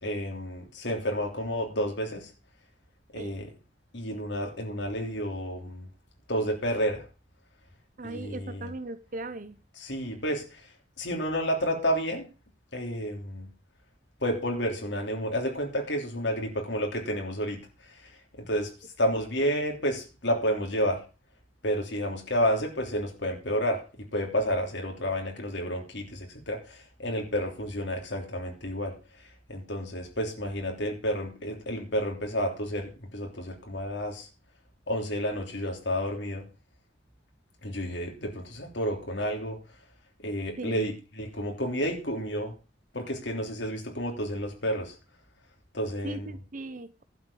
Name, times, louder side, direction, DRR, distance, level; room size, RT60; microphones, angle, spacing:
voice 1, 0.0-2.3 3.1-3.5 3.9-5.9 6.3-7.0 8.0-8.7 9.8-10.7 11.0-12.3 12.7-13.5 14.2-17.7 18.4-18.7 19.0-21.0 21.6-29.0 29.5-34.3 34.9-36.5 37.6-39.6 40.2-42.5 42.9-44.9 45.7-46.3, equal, 65° left, 3.2 m, -30 dB
voice 2, 8.0-9.6 40.6-41.0 46.0-47.0, right 2 dB, 45° right, 0.8 m, -38 dB
11.5 x 4.9 x 8.5 m
head